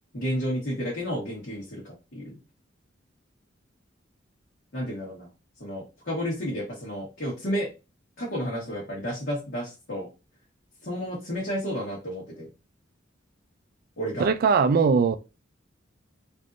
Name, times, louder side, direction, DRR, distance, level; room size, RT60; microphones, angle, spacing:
voice 1, 0.1-2.4 4.7-5.3 5.6-7.7 8.2-10.1 10.8-12.5 14.0-14.3, equal, 55° left, 1.2 m, -31 dB
voice 2, 14.2-15.2, right 5 dB, 50° right, 0.3 m, -20 dB
3.5 x 2.6 x 2.5 m
head